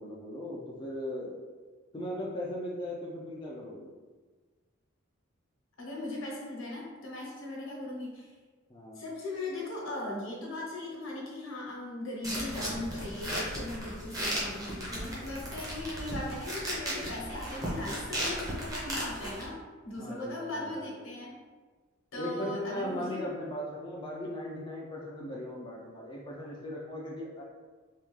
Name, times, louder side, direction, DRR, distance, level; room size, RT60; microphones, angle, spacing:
voice 1, 0.0-1.3 1.9-3.9 8.7-9.0 15.4-15.8 20.0-20.9 22.1-27.4, left 1 dB, 20° left, -4 dB, 0.4 m, -38 dB
voice 2, 5.8-8.4 8.9-19.5 19.8-21.4 22.1-23.2, left 2 dB, 70° left, -3 dB, 1.0 m, -38 dB
sound 1, 12.2-19.5, right 1 dB, 15° right, 0.8 m, -36 dB
3.4 x 2.3 x 3.1 m, 1.4 s
head